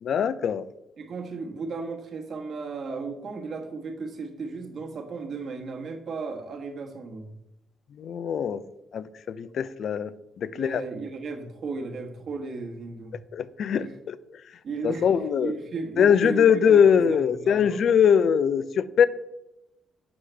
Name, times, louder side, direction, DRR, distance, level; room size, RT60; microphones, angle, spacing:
voice 1, 0.0-0.7 8.0-8.6 8.9-10.1 10.4-10.8 13.3-14.2 14.8-15.5 16.0-19.1, left 7 dB, 60° left, 16 dB, 0.4 m, -22 dB
voice 2, 1.0-7.3 10.5-13.1 13.8-13.9 14.6-15.1 15.4-17.8, right 4 dB, 55° right, 2 dB, 1.2 m, -35 dB
7.2 x 4.8 x 3.3 m, 0.91 s
cardioid pair, 90°, 0 cm